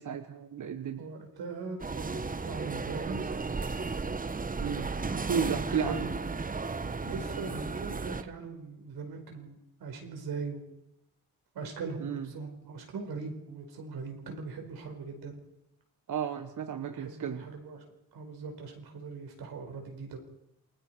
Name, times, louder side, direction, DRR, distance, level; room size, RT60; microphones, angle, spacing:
voice 1, 0.0-1.1 4.6-6.1 12.0-12.3 16.1-17.4, right 7 dB, 55° right, 8 dB, 1.1 m, -34 dB
voice 2, 1.0-3.3 5.5-6.1 7.0-10.7 11.5-15.4 16.7-17.8 18.1-20.2, right 4 dB, 80° right, 3 dB, 4.9 m, -40 dB
sound 1, 1.8-8.2, right 4 dB, 20° right, 1.0 m, -34 dB
28.0 x 20.5 x 4.7 m, 0.84 s
cardioid pair, 80°, 37 cm